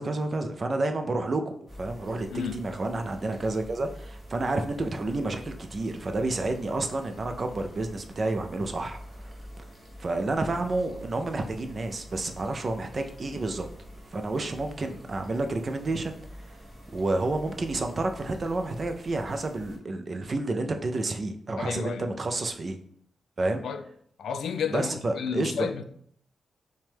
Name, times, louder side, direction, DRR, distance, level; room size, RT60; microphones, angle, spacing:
voice 1, 0.0-9.3 10.0-13.7 14.1-16.6 16.9-22.8 23.4-23.6 24.7-25.7, right 2 dB, 30° right, 0.4 m, -30 dB
sound 1, 1.7-19.8, equal, 5° right, 0.8 m, -46 dB
voice 2, 21.6-22.2 23.6-23.8 24.2-25.8, left 7 dB, 75° left, 0.3 m, -32 dB
5.9 x 2.2 x 3.4 m
wide cardioid pair, 180°, 0 cm